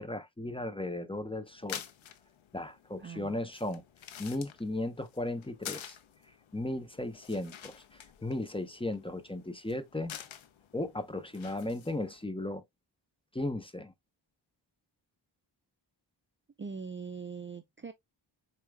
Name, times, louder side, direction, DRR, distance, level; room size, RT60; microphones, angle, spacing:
voice 1, 0.0-1.8 2.5-3.8 4.2-6.0 6.5-10.1 10.7-12.6 13.3-13.9, left 1 dB, 10° left, 0.7 m, -36 dB
sound 1, 1.5-12.2, left 9 dB, 75° left, 0.8 m, -49 dB
voice 2, 3.0-3.3 16.6-17.9, right 5 dB, 25° right, 0.5 m, -41 dB
4.9 x 4.4 x 2.2 m
wide cardioid pair, 100°, 46 cm